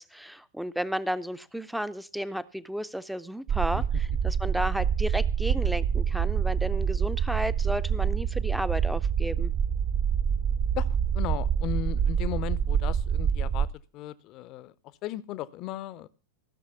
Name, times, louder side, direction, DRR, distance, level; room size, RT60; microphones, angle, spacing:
voice 1, 0.0-9.5, equal, ahead, 16 dB, 0.6 m, -33 dB
sound 1, 3.5-13.7, right 7 dB, 35° right, 0.8 m, -26 dB
voice 2, 10.8-13.7 13.9-14.7 15.0-16.1, left 13 dB, 40° left, 19 dB, 0.7 m, -36 dB
15.5 x 6.4 x 6.8 m, 0.36 s
figure-of-eight pair, 90°, 0 cm